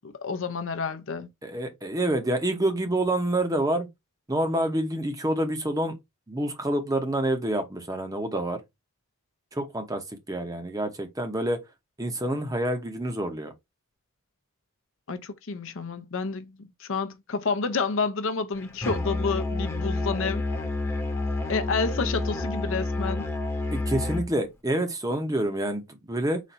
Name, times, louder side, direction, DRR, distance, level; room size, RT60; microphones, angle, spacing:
voice 1, 0.0-1.3 15.1-20.4 21.5-23.3, left 4 dB, 60° left, 0.6 m, -29 dB
voice 2, 1.4-3.9 4.3-6.0 6.3-8.6 9.5-11.6 12.0-13.5 23.7-26.4, right 1 dB, 15° right, 0.7 m, -27 dB
Musical instrument, 18.8-24.3, left 2 dB, 10° left, 0.9 m, -29 dB
4.1 x 2.6 x 4.3 m
head